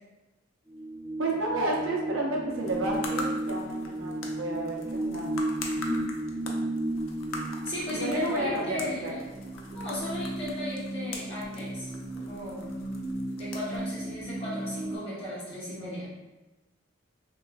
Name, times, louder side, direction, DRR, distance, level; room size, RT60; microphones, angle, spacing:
sound 1, 0.7-15.0, right 1 dB, 10° right, 1.0 m, -34 dB
voice 1, 1.2-5.3 7.9-9.2, right 2 dB, 80° right, -1 dB, 0.6 m, -31 dB
sound 2, 2.5-15.0, left 3 dB, 85° left, 0.4 m, -43 dB
voice 2, 5.7-6.1 7.6-9.2 9.7-12.7 13.4-16.2, left 1 dB, 30° left, -9 dB, 1.1 m, -36 dB
3.0 x 2.3 x 2.4 m, 1.1 s
head